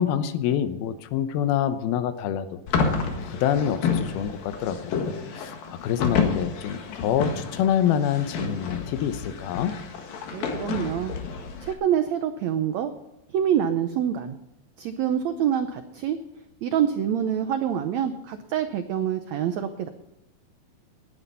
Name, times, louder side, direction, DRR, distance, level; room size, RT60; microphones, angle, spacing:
voice 1, 0.0-2.6 3.0-4.9 5.4-9.8, left 9 dB, 90° left, 11 dB, 2.8 m, -26 dB
sound 1, 2.7-11.7, left 5 dB, 75° left, 3.4 m, -30 dB
voice 2, 10.3-11.1 11.6-12.9 13.3-14.4 14.8-16.2 16.6-19.9, right 9 dB, 85° right, 8 dB, 1.5 m, -26 dB
19.0 x 10.5 x 5.5 m, 0.90 s
omnidirectional pair, 4.2 m